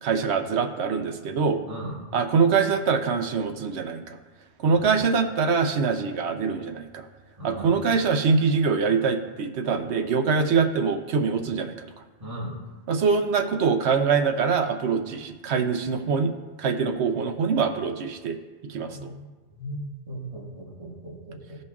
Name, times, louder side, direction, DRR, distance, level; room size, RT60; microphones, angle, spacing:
voice 1, 0.0-1.6 2.1-4.2 4.6-7.1 7.4-11.7 12.9-16.3 16.6-18.4 18.7-19.1, right 5 dB, 65° right, 6 dB, 0.9 m, -24 dB
voice 2, 4.6-5.0 7.4-7.8 12.2-12.6 18.9-21.6, right 1 dB, 25° right, -5 dB, 1.7 m, -37 dB
15.0 x 5.2 x 2.4 m, 1.3 s
omnidirectional pair, 1.3 m